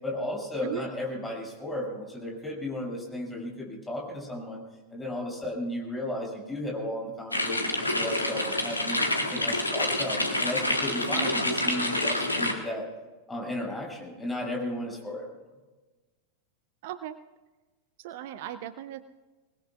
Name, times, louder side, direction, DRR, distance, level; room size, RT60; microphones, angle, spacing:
voice 1, 0.0-4.6 4.9-9.0 9.3-12.8 13.3-15.3, left 1 dB, 10° left, -2 dB, 6.6 m, -34 dB
sound 1, 7.3-12.5, left 1 dB, 85° left, 1.7 m, -27 dB
voice 2, 16.8-17.2 18.0-19.0, right 12 dB, 50° right, 13 dB, 0.6 m, -37 dB
25.5 x 20.0 x 2.4 m, 1.2 s
figure-of-eight pair, 90°, 0 cm